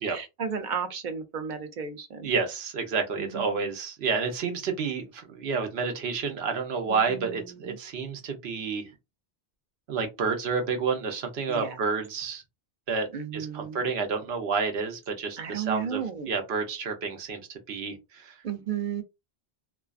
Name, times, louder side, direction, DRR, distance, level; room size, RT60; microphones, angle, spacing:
voice 1, 0.1-2.3 3.2-3.7 6.9-7.8 11.5-11.8 13.1-13.8 15.4-16.3 18.4-19.0, right 7 dB, 60° right, 0.6 m, -34 dB
voice 2, 2.2-8.8 9.9-12.4 12.9-13.1 13.3-18.3, right 5 dB, 85° right, 1.0 m, -30 dB
2.3 x 2.3 x 2.3 m
omnidirectional pair, 1.0 m